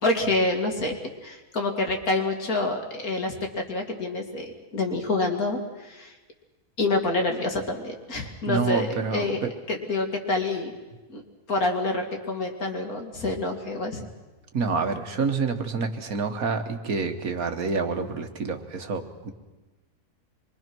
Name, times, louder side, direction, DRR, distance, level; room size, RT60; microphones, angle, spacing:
voice 1, 0.0-6.1 6.8-9.4 9.7-10.7 11.1-11.2 11.5-14.1, left 2 dB, 65° left, 3 dB, 2.8 m, -27 dB
voice 2, 8.5-9.3 14.5-19.3, right 4 dB, 65° right, 6 dB, 1.8 m, -28 dB
25.5 x 23.0 x 6.2 m, 1.2 s
omnidirectional pair, 1.7 m